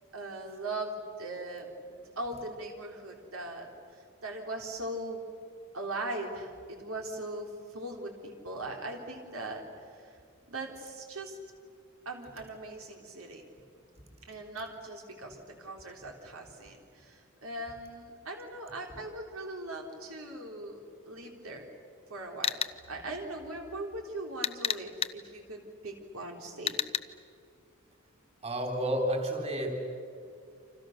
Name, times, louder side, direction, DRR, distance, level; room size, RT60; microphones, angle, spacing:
voice 1, 0.1-5.2 5.7-10.2 10.5-11.4 12.1-13.5 14.3-21.7 22.1-22.6 22.9-26.8, right 2 dB, 75° right, 1 dB, 3.7 m, -40 dB
sound 1, 22.4-22.7 24.4-25.1 26.7-27.0, left 7 dB, 30° left, 0.7 m, -30 dB
voice 2, 28.4-29.8, equal, 30° right, 2 dB, 3.9 m, -30 dB
29.0 x 27.0 x 6.7 m, 2.3 s
head